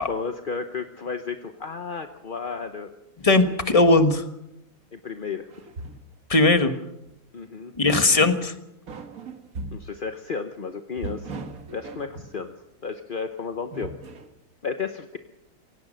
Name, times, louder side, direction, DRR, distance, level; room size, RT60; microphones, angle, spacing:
voice 1, 0.0-2.9 4.9-5.6 7.3-7.7 9.7-11.4 11.7-12.5 12.8-14.0 14.6-15.2, left 5 dB, 40° left, 7 dB, 0.8 m, -33 dB
voice 2, 3.2-4.2 6.3-6.7 7.8-8.5, left 2 dB, 20° left, 8 dB, 1.3 m, -18 dB
sound 1, 5.5-6.1 7.1-7.2 7.8-8.5 8.9-9.9 11.0-12.4 13.5-14.3, right 3 dB, 50° right, 1.8 m, -38 dB
26.5 x 17.5 x 6.4 m, 0.86 s
omnidirectional pair, 2.1 m